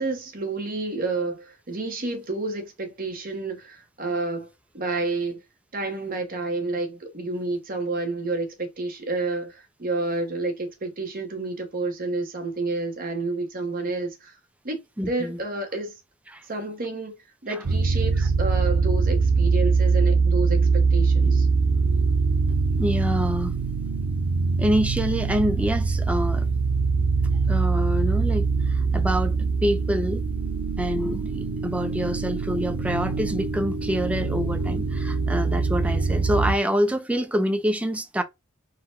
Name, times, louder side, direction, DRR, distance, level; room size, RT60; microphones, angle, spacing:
voice 1, 0.0-4.5 4.7-5.4 5.7-14.4 14.6-15.9 16.5-17.1 17.4-21.5, right 3 dB, 45° right, 1.0 m, -30 dB
voice 2, 15.0-15.4 16.3-16.4 18.2-18.3 22.8-23.6 24.6-26.5 27.5-29.3 29.6-30.2 30.8-38.2, equal, 5° right, 0.4 m, -26 dB
sound 1, 17.6-36.5, right 4 dB, 85° right, 0.6 m, -23 dB
3.9 x 2.2 x 4.2 m
head